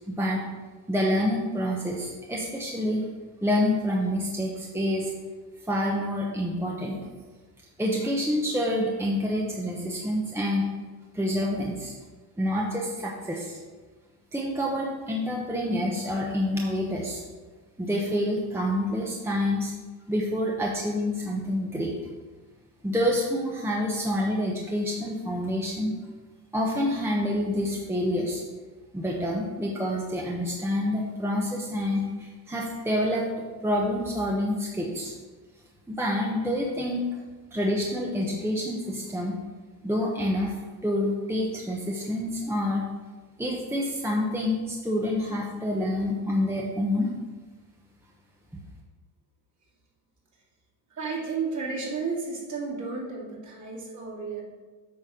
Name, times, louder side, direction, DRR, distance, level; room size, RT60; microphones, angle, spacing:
voice 1, 0.1-0.4 0.9-3.0 3.4-5.1 5.7-7.0 7.8-10.7 11.1-11.9 12.4-13.6 14.3-17.2 17.8-19.7 20.1-21.9 22.8-25.9 26.5-28.4 28.9-33.3 33.6-35.1 35.9-37.2 37.5-39.4 39.8-42.8 43.4-47.1, left 1 dB, 5° right, -2 dB, 1.0 m, -27 dB
voice 2, 50.9-54.4, right 4 dB, 40° right, -3 dB, 2.6 m, -32 dB
8.5 x 4.2 x 6.4 m, 1.3 s
cardioid pair, 115°, 44 cm